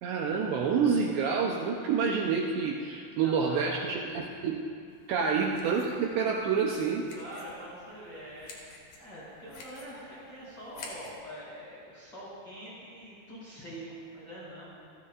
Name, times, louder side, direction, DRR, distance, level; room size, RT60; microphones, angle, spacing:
voice 1, 0.0-4.6 5.1-7.1, right 5 dB, 75° right, -1 dB, 2.7 m, -28 dB
voice 2, 3.2-4.3 7.1-8.5 8.9-14.6, equal, 25° left, -9 dB, 5.1 m, -44 dB
sound 1, 4.9-11.2, left 3 dB, 55° left, 3.3 m, -51 dB
28.5 x 14.5 x 2.5 m, 2.4 s
omnidirectional pair, 5.7 m